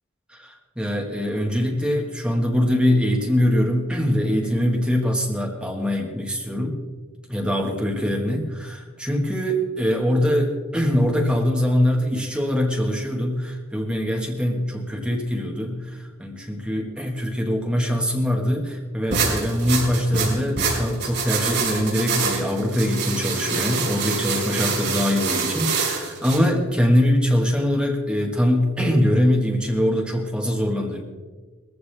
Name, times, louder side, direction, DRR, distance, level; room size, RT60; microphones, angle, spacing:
voice 1, 0.3-6.8 7.3-31.0, equal, 5° right, 1 dB, 1.6 m, -23 dB
sound 1, 19.1-26.4, right 4 dB, 55° right, 5.0 m, -25 dB
20.5 x 14.5 x 3.4 m, 1.4 s
head